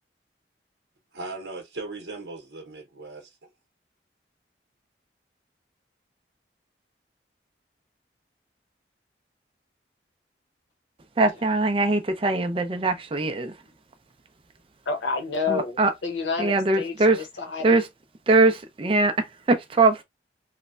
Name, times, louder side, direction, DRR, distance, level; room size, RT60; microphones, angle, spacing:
voice 1, 1.1-3.5, right 3 dB, 65° right, 0.8 m, -38 dB
voice 2, 11.2-13.6 15.5-15.9 16.4-17.2 17.6-17.9 18.3-20.0, right 3 dB, 30° right, 0.4 m, -21 dB
voice 3, 14.9-16.9 17.4-17.8, left 4 dB, 85° left, 0.8 m, -29 dB
3.1 x 2.1 x 2.4 m
head